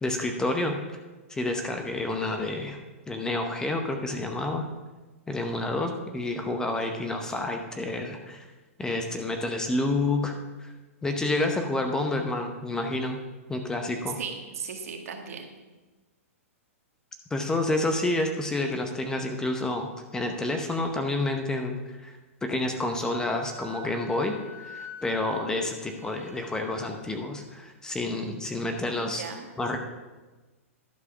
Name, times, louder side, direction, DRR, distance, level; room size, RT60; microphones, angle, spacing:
voice 1, 0.0-1.0 1.3-2.8 3.1-4.7 5.3-8.4 8.8-10.3 10.6-10.7 11.0-13.2 13.5-14.2 17.3-29.2 29.6-29.8, left 2 dB, 10° left, 4 dB, 0.8 m, -29 dB
voice 2, 14.2-15.5 28.9-29.5, right 6 dB, 75° right, 4 dB, 1.7 m, -37 dB
Wind instrument woodwind instrument, 23.5-26.9, left 1 dB, 20° right, 2.1 m, -45 dB
11.5 x 4.8 x 6.1 m, 1.2 s
hypercardioid pair, 140°, 8 cm